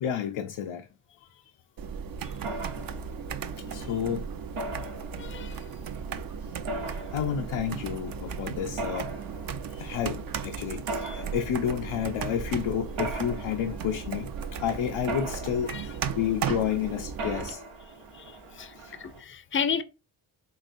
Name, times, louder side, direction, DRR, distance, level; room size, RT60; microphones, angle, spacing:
voice 1, 0.0-0.9 1.2-1.5 2.5-2.8 3.6-4.3 4.7-4.9 6.3-6.9 7.1-9.1 9.6-17.6 18.7-19.0, left 9 dB, 80° left, 0.6 m, -31 dB
sound 1, 1.8-17.5, right 6 dB, 50° right, 0.5 m, -36 dB
Mechanisms, 2.4-19.2, right 2 dB, 90° right, 0.8 m, -41 dB
voice 2, 5.2-5.6 11.0-11.2 15.7-15.8 18.1-19.8, left 6 dB, 25° left, 0.5 m, -33 dB
4.1 x 3.3 x 2.5 m
cardioid pair, 60°, 48 cm